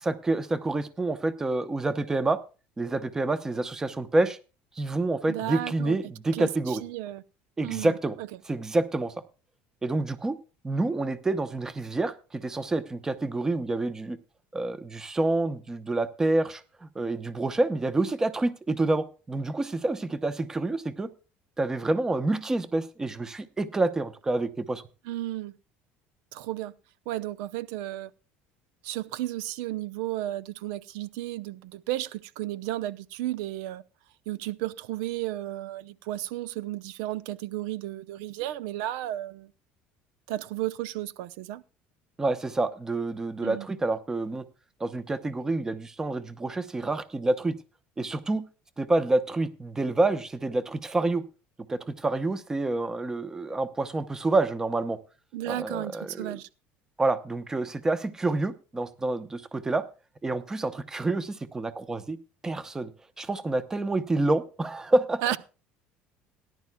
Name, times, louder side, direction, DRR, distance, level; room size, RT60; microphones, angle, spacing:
voice 1, 0.0-2.4 2.8-4.4 4.8-6.8 7.6-8.2 8.5-9.1 9.8-10.4 10.6-14.2 14.5-21.1 21.6-24.8 42.2-44.4 44.8-47.6 48.0-48.4 48.8-51.2 51.7-55.0 55.5-56.4 57.0-59.8 60.2-62.2 62.4-62.9 63.2-65.2, right 2 dB, 15° right, 0.8 m, -28 dB
voice 2, 5.3-6.0 6.3-7.2 7.6-8.3 25.0-25.5 26.3-26.7 27.1-28.1 28.8-33.8 34.3-39.5 40.3-41.6 43.4-43.7 55.3-56.5 65.2-65.4, right 14 dB, 85° right, 0.7 m, -33 dB
18.5 x 11.0 x 2.3 m
cardioid pair, 150°, 4 cm